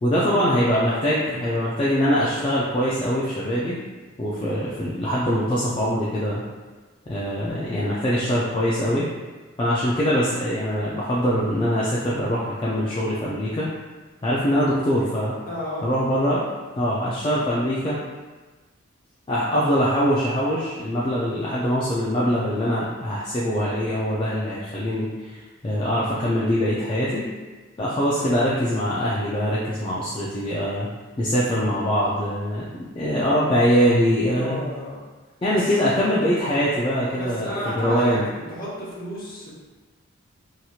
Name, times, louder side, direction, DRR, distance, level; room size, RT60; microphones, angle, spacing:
voice 1, 0.0-3.8 4.2-6.4 7.1-9.1 9.6-13.7 14.2-15.3 15.8-16.4 16.8-18.0 19.3-27.3 27.8-30.9 31.2-34.6 35.4-38.2, equal, 25° left, -7 dB, 0.3 m, -23 dB
voice 2, 15.5-15.9 34.3-35.0 35.5-36.2 37.1-38.2 38.5-39.5, equal, 40° left, -7 dB, 0.9 m, -32 dB
2.9 x 2.8 x 2.3 m, 1.3 s
head